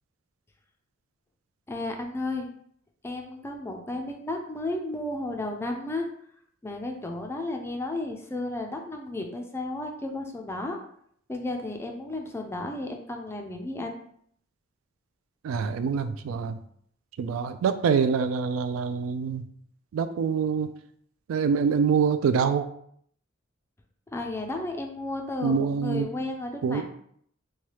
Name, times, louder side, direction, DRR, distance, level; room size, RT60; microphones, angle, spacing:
voice 1, 1.7-2.5 3.0-6.1 6.6-10.8 11.3-14.0 24.1-26.8, left 2 dB, 10° left, 3 dB, 0.3 m, -33 dB
voice 2, 15.4-16.6 17.2-19.4 19.9-20.7 21.3-22.7 25.4-26.1 26.6-26.8, right 6 dB, 85° right, 12 dB, 0.3 m, -25 dB
3.1 x 2.3 x 2.9 m, 0.66 s
head